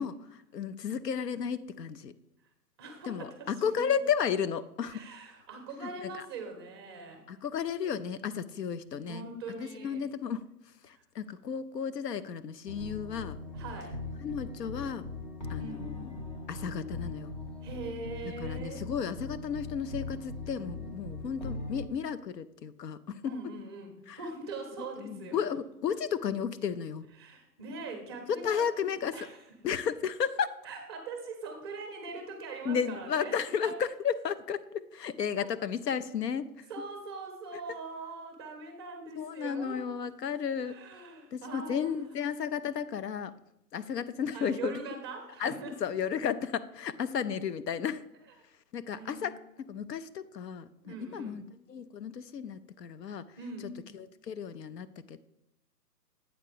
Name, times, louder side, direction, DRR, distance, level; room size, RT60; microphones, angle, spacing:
voice 1, 0.0-2.1 3.1-5.0 5.8-6.1 7.3-9.3 9.6-10.5 10.8-13.4 14.2-15.0 15.5-16.2 16.5-17.3 18.4-23.2 24.1-24.2 25.0-27.1 28.3-29.2 29.6-30.5 32.6-36.6 39.2-40.7 41.3-43.3 43.7-44.8 45.4-48.0 48.7-49.4 49.7-51.4 51.7-53.3 54.2-55.2, left 7 dB, 75° left, 13 dB, 0.7 m, -33 dB
voice 2, 2.8-3.9 4.9-7.3 9.0-10.0 10.9-11.0 13.5-13.9 15.6-15.9 17.6-18.9 23.2-25.4 27.2-28.7 29.1-29.4 30.6-33.4 33.6-33.8 36.7-39.8 40.6-42.0 44.3-45.8 48.9-49.4 50.8-51.4 53.4-53.8, right 3 dB, 15° right, 4 dB, 0.6 m, -42 dB
sound 1, 12.7-21.9, left 2 dB, 30° left, 0.6 m, -40 dB
8.2 x 3.7 x 6.5 m, 0.83 s
hypercardioid pair, 150°, 48 cm